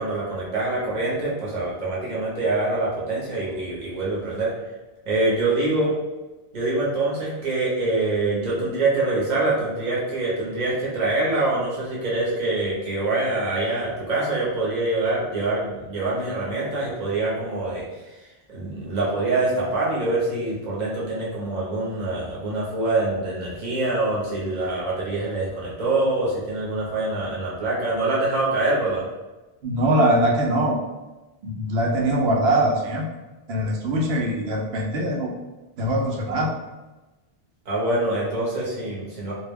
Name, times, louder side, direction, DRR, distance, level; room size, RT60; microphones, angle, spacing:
voice 1, 0.0-4.5 5.1-5.9 6.5-17.8 18.5-29.0 37.7-39.3, right 2 dB, 45° right, -5 dB, 0.9 m, -25 dB
voice 2, 29.6-30.8 31.4-33.0 33.5-35.3 35.8-36.5, right 1 dB, 75° right, 0 dB, 0.8 m, -22 dB
2.3 x 2.1 x 3.4 m, 1.1 s
omnidirectional pair, 1.1 m